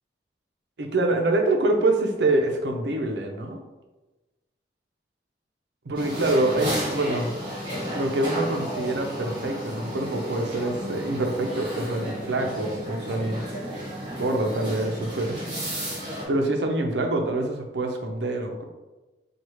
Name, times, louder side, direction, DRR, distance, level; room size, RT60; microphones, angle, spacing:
voice 1, 0.8-3.6 5.8-7.4 7.9-13.6 14.2-15.4 16.3-18.6, right 2 dB, 75° right, 3 dB, 0.6 m, -25 dB
sound 1, 5.9-16.2, equal, 25° right, 1.3 m, -33 dB
4.7 x 2.4 x 3.0 m, 1.1 s
head